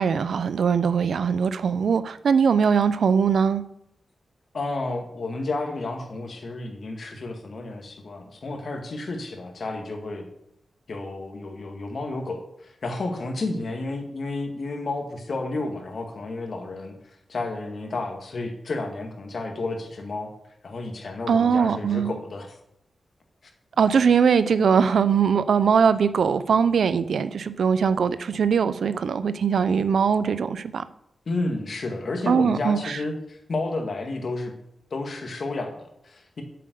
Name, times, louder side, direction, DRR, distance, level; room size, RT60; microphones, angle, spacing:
voice 1, 0.0-3.6 21.3-22.2 23.8-30.8 32.3-32.8, right 6 dB, 80° right, 14 dB, 0.6 m, -21 dB
voice 2, 4.5-10.3 10.9-16.9 17.3-20.3 20.6-22.6 31.3-34.5 34.9-36.4, left 2 dB, 55° left, 4 dB, 2.0 m, -31 dB
7.7 x 7.7 x 6.9 m, 0.79 s
wide cardioid pair, 125°, 0 cm